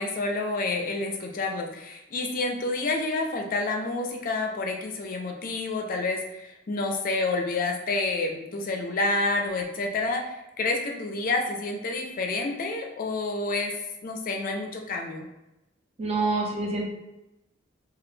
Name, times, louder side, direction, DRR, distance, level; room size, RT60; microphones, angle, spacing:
voice 1, 0.0-13.7 14.0-15.3, left 3 dB, 45° left, 3 dB, 0.4 m, -29 dB
voice 2, 16.0-16.8, right 3 dB, 30° right, 0 dB, 0.4 m, -26 dB
2.3 x 2.1 x 3.1 m, 0.94 s
head